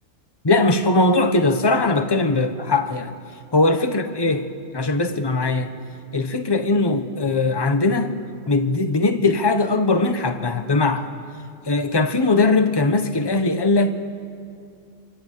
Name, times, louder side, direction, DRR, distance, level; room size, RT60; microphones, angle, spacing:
voice 1, 0.4-3.1 3.5-4.5 4.7-5.7 6.1-8.2 8.5-11.1 11.7-13.9, left 2 dB, 20° left, 7 dB, 1.2 m, -20 dB
26.0 x 25.5 x 8.3 m, 2.5 s
omnidirectional pair, 1.3 m